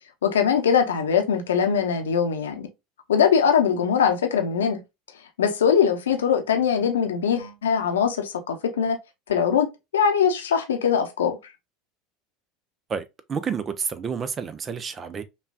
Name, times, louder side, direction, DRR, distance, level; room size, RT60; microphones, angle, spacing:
voice 1, 0.2-2.7 3.1-4.8 5.4-9.0 9.3-9.7 9.9-11.4, left 7 dB, 75° left, 0.8 m, -21 dB
voice 2, 12.9-15.2, right 6 dB, 30° right, 0.5 m, -30 dB
5.3 x 2.3 x 2.3 m
figure-of-eight pair, 75°, 0 cm